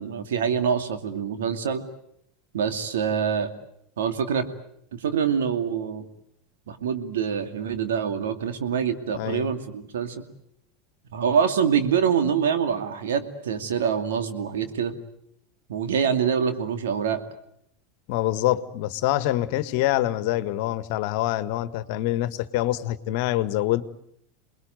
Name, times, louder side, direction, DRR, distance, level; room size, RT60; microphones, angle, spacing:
voice 1, 0.0-1.8 2.5-3.5 4.0-4.5 4.9-6.0 6.7-10.2 11.1-14.9 15.7-17.2, right 7 dB, 70° right, 7 dB, 2.5 m, -25 dB
voice 2, 9.1-9.5 18.1-23.8, left 14 dB, 60° left, 14 dB, 1.5 m, -25 dB
28.0 x 21.0 x 9.2 m, 0.72 s
hypercardioid pair, 85°, 0 cm